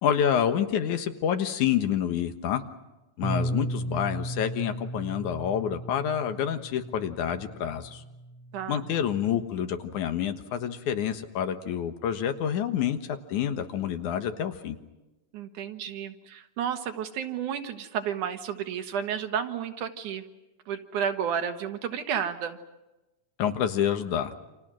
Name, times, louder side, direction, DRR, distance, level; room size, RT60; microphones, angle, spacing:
voice 1, 0.0-2.6 3.2-8.0 8.7-14.8 23.4-24.4, left 9 dB, 80° left, 8 dB, 2.8 m, -28 dB
Bass guitar, 3.2-9.5, right 1 dB, 50° right, 4.1 m, -36 dB
voice 2, 8.5-8.9 15.3-20.2 20.7-22.6, right 8 dB, 90° right, 6 dB, 3.0 m, -32 dB
28.5 x 27.0 x 6.3 m, 1.0 s
omnidirectional pair, 3.4 m